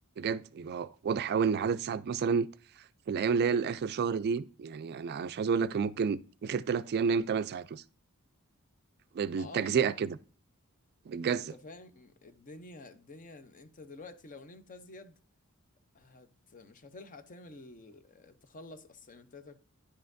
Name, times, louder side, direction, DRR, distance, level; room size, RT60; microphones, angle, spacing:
voice 1, 0.2-2.5 3.1-7.8 9.1-10.2 11.1-11.5, right 6 dB, 50° right, 0.3 m, -30 dB
voice 2, 9.3-10.0 11.3-15.1 15.9-19.6, left 2 dB, 40° left, 0.6 m, -50 dB
9.9 x 5.5 x 2.6 m
head